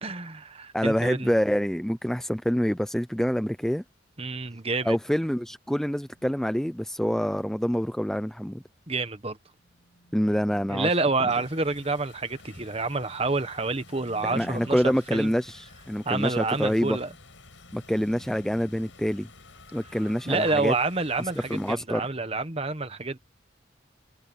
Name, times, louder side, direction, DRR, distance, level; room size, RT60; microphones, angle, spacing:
voice 1, 0.0-1.3 4.2-5.0 8.9-9.4 10.7-15.3 16.0-17.1 20.2-23.2, right 3 dB, 30° right, 1.3 m, -28 dB
voice 2, 0.7-3.8 4.9-8.6 10.1-10.9 14.2-17.0 17.7-19.3 19.7-20.7 21.5-22.0, equal, 5° left, 0.5 m, -26 dB
sound 1, 9.5-11.3 13.5-15.2 17.1-19.5, right 1 dB, 55° left, 5.0 m, -51 dB
sound 2, 11.3-21.8, left 3 dB, 75° left, 6.2 m, -51 dB
head